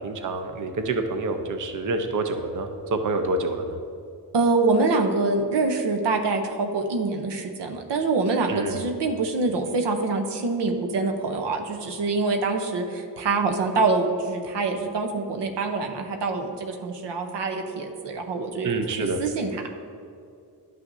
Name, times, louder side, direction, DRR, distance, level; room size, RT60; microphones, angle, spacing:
voice 1, 0.0-3.8 8.5-8.8 18.6-19.2, right 2 dB, 45° right, 6 dB, 0.7 m, -27 dB
voice 2, 4.3-19.7, right 3 dB, 80° right, 3 dB, 0.8 m, -25 dB
11.0 x 5.8 x 2.6 m, 2.4 s
cardioid pair, 60°, 42 cm